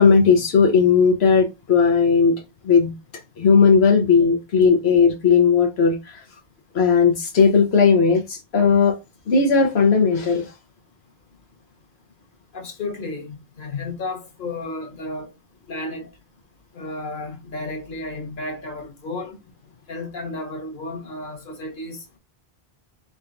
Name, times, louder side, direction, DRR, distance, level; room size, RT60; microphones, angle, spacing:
voice 1, 0.0-2.9 3.4-6.2 6.7-9.0 9.3-10.5, left 5 dB, 85° left, 1.1 m, -17 dB
voice 2, 12.5-15.3 15.7-16.1 16.7-19.4 19.9-22.2, left 2 dB, 55° left, 1.5 m, -32 dB
4.4 x 3.8 x 2.5 m
omnidirectional pair, 1.1 m